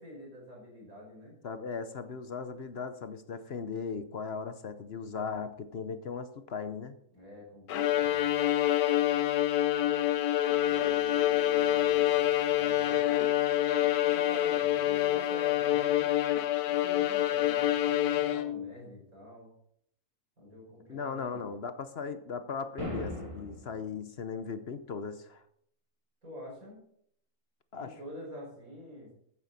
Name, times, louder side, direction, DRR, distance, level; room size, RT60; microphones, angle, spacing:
voice 1, 0.0-1.3 7.1-8.2 10.6-13.1 13.9-16.1 16.7-19.5 20.4-21.6 26.2-26.8 27.7-29.1, left 1 dB, 60° right, -2 dB, 5.9 m, -47 dB
voice 2, 1.4-7.0 20.9-25.4 27.7-27.9, left 5 dB, 50° left, 11 dB, 0.9 m, -38 dB
Bowed string instrument, 7.7-18.7, left 12 dB, 75° left, 1.2 m, -27 dB
sound 1, 22.8-23.8, left 1 dB, 20° right, 2.9 m, -38 dB
14.5 x 9.5 x 4.1 m, 0.68 s
omnidirectional pair, 1.7 m